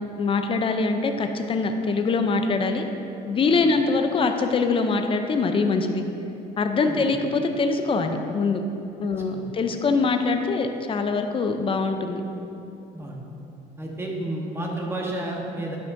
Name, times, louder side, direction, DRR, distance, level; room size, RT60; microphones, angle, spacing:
voice 1, 0.2-2.8 3.3-6.0 6.6-8.6 9.0-12.2, left 4 dB, 30° left, 6 dB, 0.5 m, -23 dB
voice 2, 13.8-15.8, right 1 dB, 15° right, -1 dB, 1.1 m, -31 dB
10.0 x 5.9 x 2.6 m, 2.9 s
cardioid pair, 110°, 17 cm